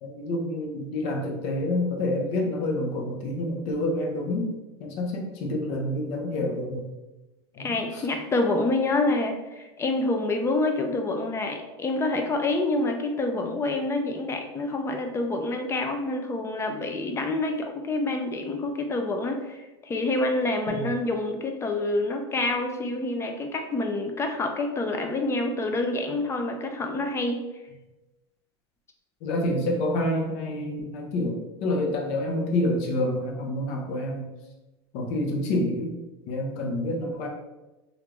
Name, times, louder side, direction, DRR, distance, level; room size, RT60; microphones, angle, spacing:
voice 1, 0.0-4.5 4.8-6.9 7.6-8.0 20.7-20.9 29.2-34.3 34.9-35.9 36.2-37.3, left 1 dB, 55° left, 1 dB, 0.8 m, -28 dB
voice 2, 7.6-27.4, left 2 dB, 20° left, 4 dB, 0.4 m, -27 dB
3.2 x 2.5 x 3.0 m, 1.1 s
supercardioid pair, 120°, 14 cm